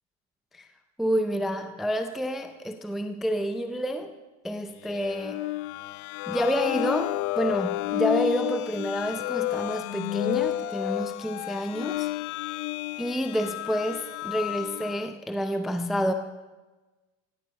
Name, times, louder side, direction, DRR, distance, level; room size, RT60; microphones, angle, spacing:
voice 1, 1.0-4.1 4.4-5.4 6.3-12.1 13.0-16.1, equal, ahead, 7 dB, 0.4 m, -29 dB
sound 1, 4.8-15.1, left 18 dB, 50° left, 0.5 m, -31 dB
15.5 x 14.5 x 5.9 m, 1.2 s
cardioid pair, 155°, 38 cm